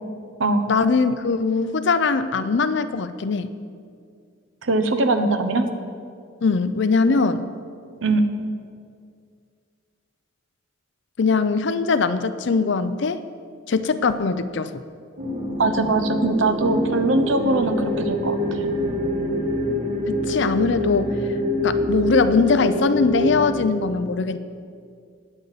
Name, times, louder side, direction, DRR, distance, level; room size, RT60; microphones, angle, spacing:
voice 1, 0.7-3.5 6.4-7.4 11.2-13.2 13.7-14.8 20.1-21.1 21.6-24.4, left 4 dB, 60° left, 12 dB, 0.5 m, -21 dB
voice 2, 4.6-5.7 8.0-8.3 15.6-18.7, right 2 dB, 75° right, 7 dB, 0.9 m, -21 dB
sound 1, 15.2-23.5, left 1 dB, 50° right, 3.4 m, -25 dB
18.5 x 8.2 x 4.1 m, 2.3 s
head